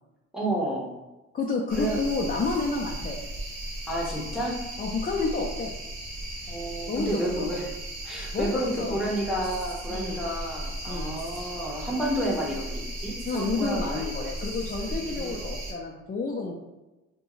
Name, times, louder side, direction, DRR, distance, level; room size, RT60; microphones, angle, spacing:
voice 1, 0.3-0.9 1.7-2.0 3.9-4.6 6.5-7.7 8.0-14.3 14.9-15.4, right 1 dB, ahead, -4 dB, 1.0 m, -31 dB
voice 2, 1.3-3.2 4.8-5.7 6.9-7.5 8.3-9.0 9.9-10.2 10.9-11.1 13.3-16.5, left 4 dB, 30° left, -3 dB, 0.4 m, -30 dB
sound 1, 1.7-15.7, right 1 dB, 75° right, 1.1 m, -36 dB
3.5 x 2.2 x 3.0 m, 1.1 s
cardioid pair, 90°, 30 cm